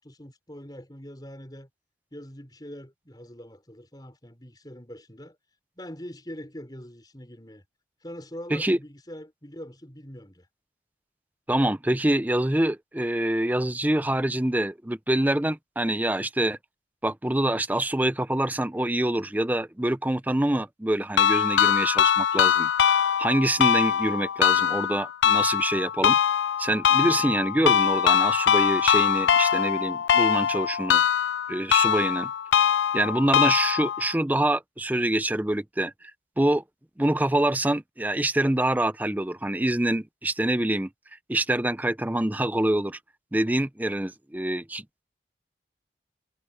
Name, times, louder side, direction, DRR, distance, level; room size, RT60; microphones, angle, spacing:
voice 1, 0.0-1.7 2.1-5.4 5.8-7.6 8.0-10.5 27.1-27.2, equal, 20° left, 5.5 m, -43 dB
voice 2, 11.5-16.6 17.0-22.7 23.2-26.2 26.6-31.0 31.5-32.3 32.9-35.9 36.4-36.6 37.0-40.9 41.3-43.0 43.3-45.0, right 1 dB, 10° right, 0.5 m, -25 dB
sound 1, 21.2-34.1, left 8 dB, 90° left, 0.4 m, -22 dB
head